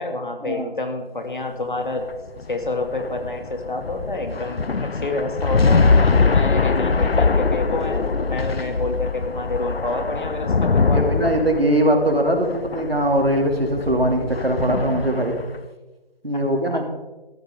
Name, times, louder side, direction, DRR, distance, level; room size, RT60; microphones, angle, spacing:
voice 1, 0.0-2.0 2.5-8.0 8.3-11.3 16.7-16.8, left 2 dB, 55° left, 4 dB, 2.3 m, -28 dB
sound 1, 2.0-15.6, left 4 dB, 90° left, 0.7 m, -22 dB
voice 2, 10.9-15.4 16.2-16.8, right 1 dB, 85° right, 3 dB, 2.7 m, -21 dB
13.0 x 12.5 x 3.7 m, 1.1 s
figure-of-eight pair, 160°, 29 cm